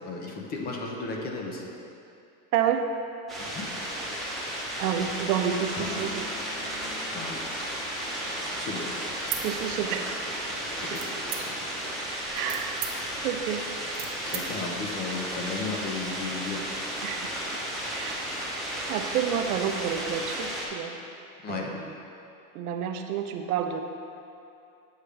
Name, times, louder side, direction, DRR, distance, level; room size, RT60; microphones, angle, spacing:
voice 1, 0.0-1.7 3.4-3.7 7.1-7.4 8.4-9.0 10.8-11.8 14.2-16.7 21.4-21.7, left 3 dB, 25° left, 0 dB, 0.4 m, -35 dB
voice 2, 2.5-2.8 4.8-6.4 9.4-10.1 12.3-12.8 13.2-13.7 14.2-14.3 17.0-17.3 17.9-18.4 18.9-21.0 21.5-21.9 22.5-23.8, right 9 dB, 90° right, 5 dB, 0.7 m, -29 dB
sound 1, 3.3-20.7, right 1 dB, ahead, 0.8 m, -34 dB
Guitar, 5.7-11.3, left 2 dB, 65° left, 1.4 m, -46 dB
sound 2, 9.2-10.2 10.9-11.7 12.2-14.4, right 10 dB, 40° right, 0.7 m, -37 dB
8.1 x 4.9 x 3.3 m, 2.6 s
supercardioid pair, 145°, 44 cm